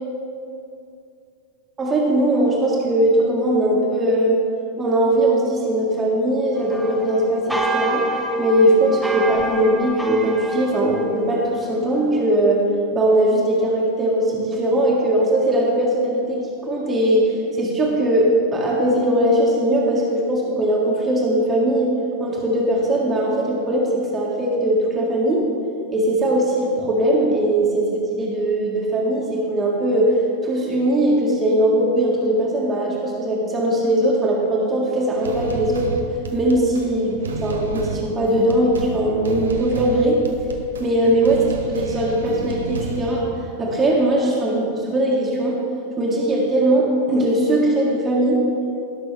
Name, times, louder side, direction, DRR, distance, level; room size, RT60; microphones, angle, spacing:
voice 1, 1.8-4.4 4.8-8.0 8.4-12.6 12.9-21.9 22.2-25.5 25.9-30.1 30.4-35.9 36.3-40.2 40.8-43.2 43.6-45.6 46.0-48.4, right 1 dB, 20° right, -4 dB, 1.6 m, -20 dB
sound 1, 6.5-12.3, right 1 dB, 5° right, 0.9 m, -27 dB
sound 2, 35.2-43.2, right 3 dB, 70° right, 1.0 m, -31 dB
17.0 x 6.0 x 3.4 m, 2.6 s
figure-of-eight pair, 90°, 0 cm